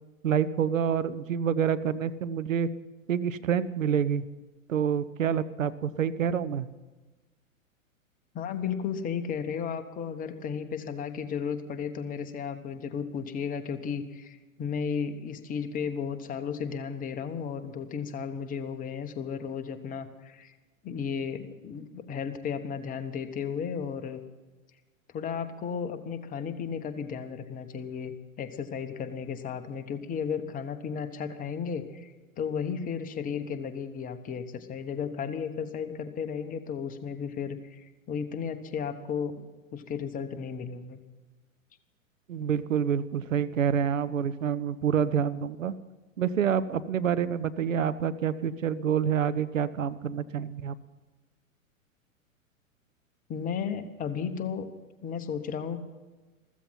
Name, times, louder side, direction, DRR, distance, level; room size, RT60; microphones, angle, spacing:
voice 1, 0.2-2.7 3.1-4.2 4.7-6.7 42.3-45.7 46.2-50.8, right 8 dB, 70° right, 13 dB, 0.9 m, -27 dB
voice 2, 8.3-20.5 20.8-24.2 25.1-32.1 32.4-39.5 39.7-41.0 53.3-54.7 55.0-55.8, left 6 dB, 20° left, 8 dB, 1.2 m, -34 dB
15.0 x 14.5 x 5.7 m, 1.2 s
figure-of-eight pair, 105°, 41 cm